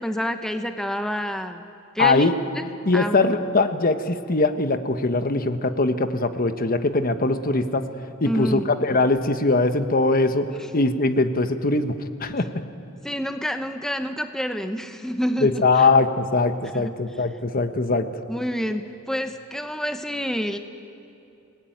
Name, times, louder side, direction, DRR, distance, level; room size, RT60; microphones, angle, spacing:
voice 1, 0.0-2.3 2.9-3.2 8.2-8.7 10.6-10.7 13.0-15.9 16.7-16.9 18.3-20.6, equal, 5° left, 7 dB, 0.9 m, -28 dB
voice 2, 2.0-2.3 2.8-7.8 8.2-11.9 12.2-12.5 15.4-18.1, left 3 dB, 45° left, 9 dB, 1.2 m, -21 dB
28.0 x 19.0 x 9.2 m, 2.8 s
head